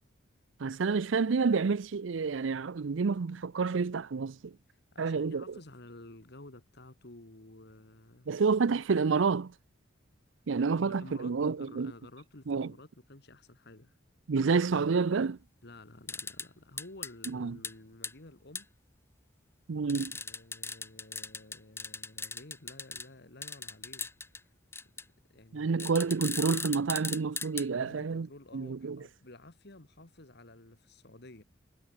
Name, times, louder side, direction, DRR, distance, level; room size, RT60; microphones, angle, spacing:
voice 1, 0.6-4.5 5.0-5.4 8.3-9.5 10.5-11.9 12.5-12.7 14.3-15.4 17.3-17.6 19.7-20.1 25.5-28.3 28.5-29.0, right 5 dB, 70° right, 0.5 m, -29 dB
voice 2, 4.7-8.3 10.7-14.0 15.6-18.7 19.9-24.5 25.3-25.9 27.8-31.4, left 2 dB, 60° left, 2.3 m, -52 dB
sound 1, 16.1-16.5 16.8-17.3 17.6-17.7 18.0-18.1 18.5-18.6 19.9-23.1 23.4-24.4 24.7-25.0 25.8-27.7, left 4 dB, 15° left, 1.9 m, -38 dB
head